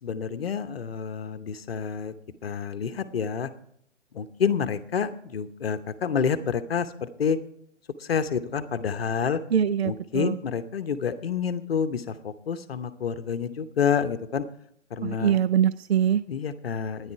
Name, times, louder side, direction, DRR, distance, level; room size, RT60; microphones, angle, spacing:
voice 1, 0.0-2.1 2.4-3.5 4.1-7.4 8.0-9.4 9.8-14.4 14.9-15.4 16.3-17.1, left 7 dB, 55° left, 11 dB, 0.9 m, -28 dB
voice 2, 9.5-10.4 15.0-16.2, right 9 dB, 55° right, 15 dB, 0.5 m, -23 dB
13.5 x 9.9 x 4.6 m, 0.68 s
figure-of-eight pair, 135°, 37 cm